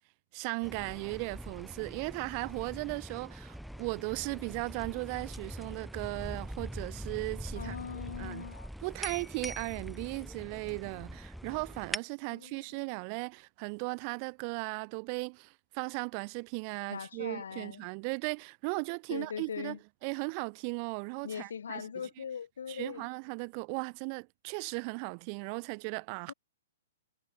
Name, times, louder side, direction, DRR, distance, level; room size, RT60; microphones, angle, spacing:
voice 1, 0.3-7.8 8.2-8.5 8.8-21.8 22.2-22.3 22.7-26.3, right 40 dB or more, 30° right, 1.1 m, -37 dB
sound 1, 0.6-12.0, equal, ahead, 1.8 m, -43 dB
voice 2, 7.5-8.7 12.3-12.7 16.9-17.9 19.1-19.8 21.2-23.0 26.3-26.4, left 7 dB, 85° left, 1.6 m, -40 dB
hypercardioid pair, 170°, 0 cm